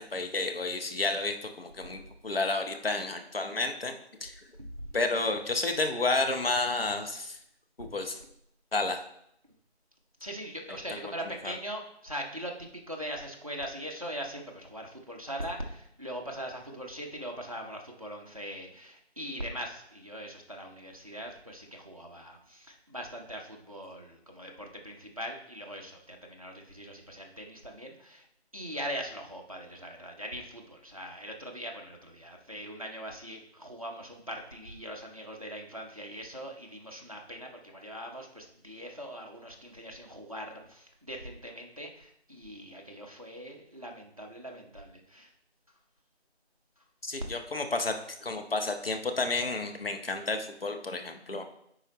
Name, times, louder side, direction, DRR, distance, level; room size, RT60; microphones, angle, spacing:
voice 1, 0.0-4.3 4.9-7.4 7.8-8.2 8.7-9.0 10.7-10.8 11.4-11.5 47.0-47.9 48.2-51.5, left 3 dB, 55° left, 5 dB, 0.9 m, -31 dB
voice 2, 10.2-28.3 28.5-45.3, equal, 30° right, 1 dB, 0.7 m, -41 dB
9.8 x 4.2 x 3.0 m, 0.74 s
figure-of-eight pair, 165°, 34 cm